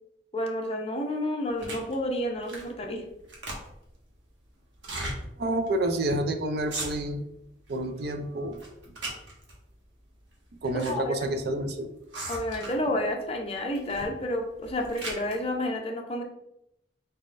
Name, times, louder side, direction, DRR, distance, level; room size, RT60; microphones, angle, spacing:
voice 1, 0.3-3.0 10.7-11.3 12.3-16.2, left 1 dB, 35° left, 2 dB, 0.6 m, -30 dB
sound 1, 1.6-1.9 2.4-2.8 3.1-3.9 4.7-5.2 5.7-5.8 6.0-6.2 6.6-7.2 7.7-8.1 8.5-9.5 10.3-10.9 11.2-11.3 12.1-12.9 13.7-14.1 14.5-15.4, right 2 dB, 80° right, 1.1 m, -37 dB
voice 2, 5.4-7.2 7.7-8.6 10.6-11.9, right 1 dB, 60° right, 6 dB, 0.4 m, -29 dB
4.1 x 3.6 x 2.5 m, 0.81 s
head